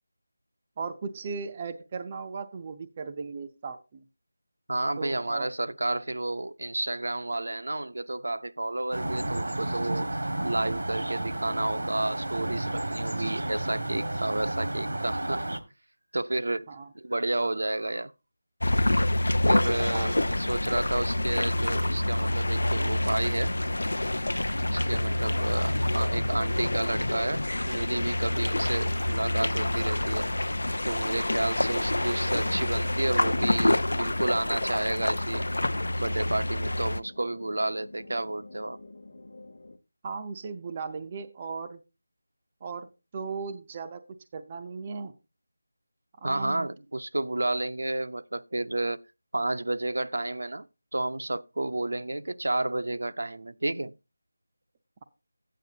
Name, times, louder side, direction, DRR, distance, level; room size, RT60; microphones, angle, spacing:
voice 1, 0.8-4.0 5.0-5.5 16.7-16.9 19.9-20.2 40.0-41.8 42.6-44.0 44.3-45.1 46.2-46.7, right 5 dB, 15° right, 0.5 m, -37 dB
voice 2, 4.7-10.1 10.4-15.4 16.1-16.7 16.9-18.1 19.5-23.5 24.7-30.3 30.8-35.5 36.0-38.8 46.2-49.0 49.3-50.7 50.9-53.9, right 2 dB, 70° right, 0.6 m, -31 dB
sound 1, 8.9-15.6, right 1 dB, 90° right, 1.7 m, -32 dB
sound 2, 18.6-37.0, left 1 dB, 85° left, 0.6 m, -27 dB
sound 3, 33.6-39.8, left 2 dB, 40° left, 1.0 m, -48 dB
12.5 x 9.2 x 2.8 m
figure-of-eight pair, 180°, 0 cm